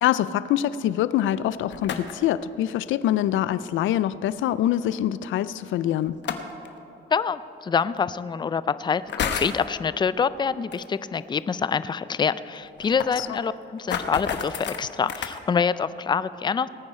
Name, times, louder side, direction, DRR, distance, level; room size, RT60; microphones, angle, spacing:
voice 1, 0.0-6.2 13.2-13.3, left 12 dB, 80° left, 16 dB, 0.4 m, -24 dB
sound 1, 1.7-2.3 4.0-4.1 6.1-6.7 7.8-7.9 8.9-9.6 10.7-10.9 11.2-11.3 11.6-11.7 11.9-12.0 12.6-15.4, left 7 dB, 65° left, 1.0 m, -31 dB
voice 2, 7.1-16.7, left 6 dB, 25° left, 16 dB, 0.4 m, -26 dB
19.0 x 9.3 x 4.3 m, 2.9 s
cardioid pair, 90°, 20 cm